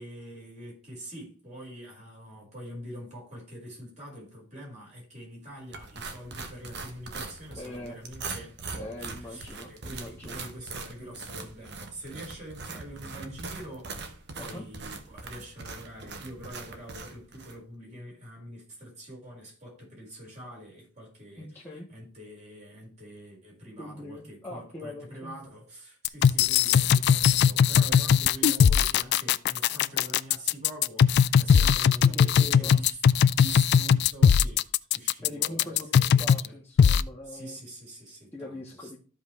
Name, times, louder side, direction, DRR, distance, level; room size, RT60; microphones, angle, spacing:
voice 1, 0.0-36.6 37.2-38.9, right 1 dB, 35° right, 4.8 m, -45 dB
sound 1, 5.7-17.6, right 4 dB, 55° right, 1.3 m, -41 dB
voice 2, 7.5-8.0 8.8-10.4 14.3-14.7 21.4-21.9 23.8-25.3 32.0-32.8 35.2-37.6 38.3-39.0, left 1 dB, 10° left, 1.4 m, -42 dB
sound 2, 26.0-36.5 36.8-37.0, left 7 dB, 55° left, 0.3 m, -20 dB
13.5 x 5.2 x 3.2 m
head